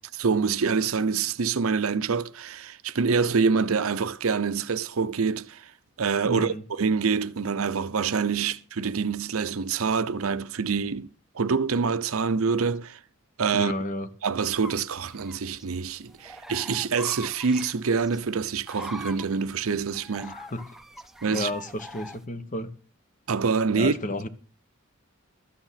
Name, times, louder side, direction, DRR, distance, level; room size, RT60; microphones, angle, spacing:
voice 1, 0.2-5.7 6.0-13.0 13.4-13.7 14.2-20.4 21.2-21.5 23.3-23.9, right 5 dB, 80° right, 0.7 m, -26 dB
voice 2, 6.2-6.6 13.5-14.1 20.2-20.6 21.3-22.7 23.7-24.3, left 1 dB, 40° left, 1.1 m, -32 dB
sound 1, 14.6-22.2, equal, ahead, 0.7 m, -43 dB
13.0 x 8.9 x 5.8 m
head